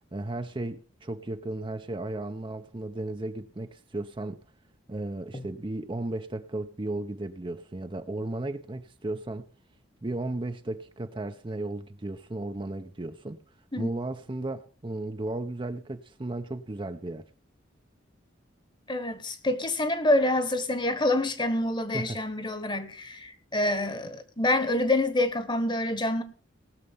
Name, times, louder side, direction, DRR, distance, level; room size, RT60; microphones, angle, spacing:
voice 1, 0.1-4.4 4.9-9.5 10.0-13.4 13.8-17.2 21.9-22.2, right 2 dB, 25° right, 0.6 m, -35 dB
voice 2, 18.9-26.2, left 1 dB, 25° left, 1.2 m, -27 dB
19.0 x 6.7 x 5.5 m
head